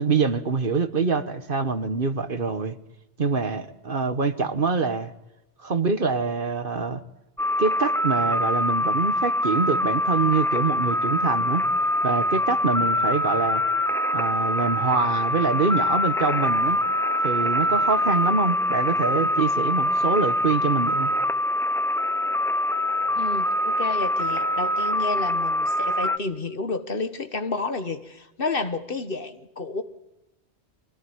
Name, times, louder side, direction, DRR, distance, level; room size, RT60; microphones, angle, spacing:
voice 1, 0.0-2.8 3.2-5.1 5.6-7.0 7.6-11.6 12.0-13.6 14.1-16.8 17.2-21.1, right 4 dB, 50° right, 11 dB, 1.4 m, -25 dB
sound 1, 7.4-26.2, left 1 dB, 5° left, 0.5 m, -24 dB
voice 2, 23.1-29.8, left 3 dB, 55° left, 9 dB, 1.6 m, -30 dB
24.0 x 16.5 x 9.6 m, 0.92 s
omnidirectional pair, 1.2 m